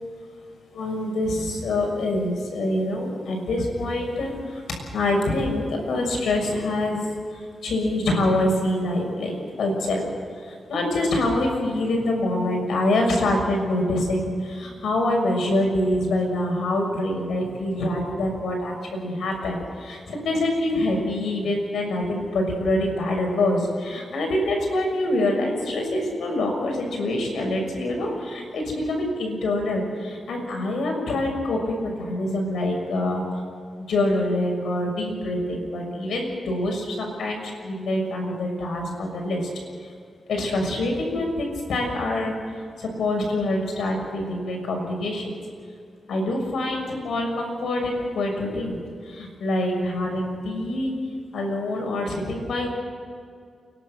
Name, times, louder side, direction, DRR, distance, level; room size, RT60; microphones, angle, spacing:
voice 1, 0.7-4.6 4.9-10.0 10.3-33.2 33.8-39.5 39.8-39.9 40.3-45.4 46.1-50.9 51.3-52.7, left 1 dB, 85° left, 1 dB, 6.5 m, -25 dB
30.0 x 12.0 x 8.0 m, 2.3 s
cardioid pair, 90°, 0 cm